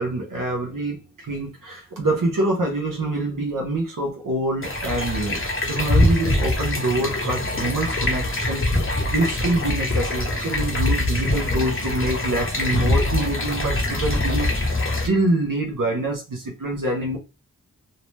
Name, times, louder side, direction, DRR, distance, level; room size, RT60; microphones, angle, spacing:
voice 1, 0.0-5.4 5.7-17.2, right 2 dB, 70° right, 0.7 m, -26 dB
sound 1, 4.6-15.1, left 2 dB, 40° left, 0.8 m, -23 dB
2.6 x 2.1 x 3.1 m
wide cardioid pair, 65°, 33 cm